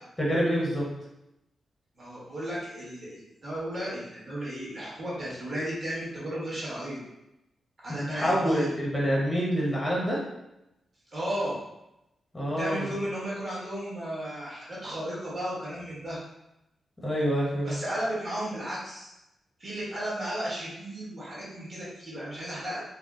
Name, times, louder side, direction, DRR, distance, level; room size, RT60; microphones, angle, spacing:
voice 1, 0.2-0.8 7.9-10.2 12.3-12.9 17.0-17.7, equal, 10° left, -5 dB, 0.8 m, -26 dB
voice 2, 2.0-7.0 7.8-8.7 11.1-11.6 12.6-16.2 17.6-19.1 19.6-22.8, right 1 dB, 25° right, -7 dB, 1.3 m, -34 dB
3.9 x 2.0 x 3.6 m, 0.89 s
wide cardioid pair, 180°, 0 cm